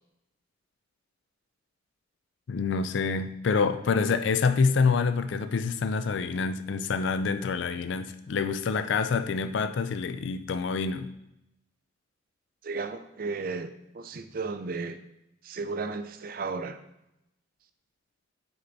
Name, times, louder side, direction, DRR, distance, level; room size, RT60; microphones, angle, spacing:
voice 1, 2.5-11.1, left 5 dB, 70° left, 11 dB, 0.4 m, -27 dB
voice 2, 12.6-15.0 15.4-16.7, right 4 dB, 45° right, 9 dB, 0.5 m, -34 dB
6.7 x 4.4 x 4.0 m, 0.85 s
head